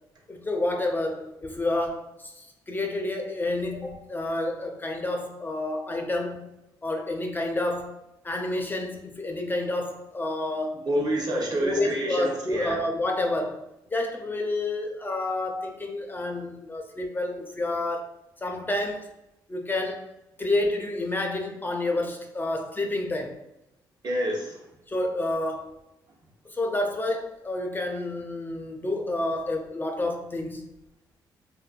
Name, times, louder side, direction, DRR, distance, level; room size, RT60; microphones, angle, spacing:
voice 1, 0.3-6.5 6.8-8.0 8.2-10.8 11.3-13.6 13.9-18.1 18.4-19.1 19.5-20.1 20.4-23.4 24.9-25.8 26.5-30.7, left 2 dB, 20° left, 2 dB, 0.4 m, -29 dB
voice 2, 10.7-12.8 24.0-24.6, right 1 dB, 50° right, -1 dB, 0.8 m, -28 dB
2.5 x 2.3 x 2.2 m, 0.89 s
supercardioid pair, 65°, 9 cm